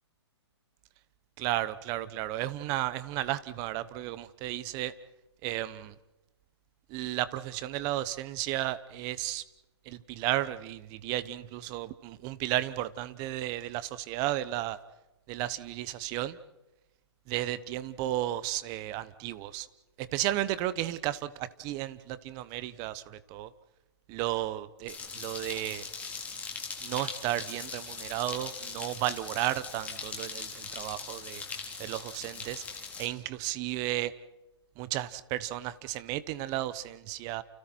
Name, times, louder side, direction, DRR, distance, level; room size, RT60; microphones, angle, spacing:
voice 1, 1.4-4.9 5.4-5.9 6.9-9.4 9.9-14.8 15.3-16.4 17.3-19.7 20.0-23.5 24.1-25.8 26.8-31.4 31.8-32.6 33.0-34.1 34.8-37.4, right 14 dB, 25° right, 15 dB, 1.0 m, -33 dB
sound 1, 24.9-33.1, left 5 dB, 10° left, 3.5 m, -40 dB
30.0 x 29.5 x 4.6 m, 0.98 s
hypercardioid pair, 150°, 15 cm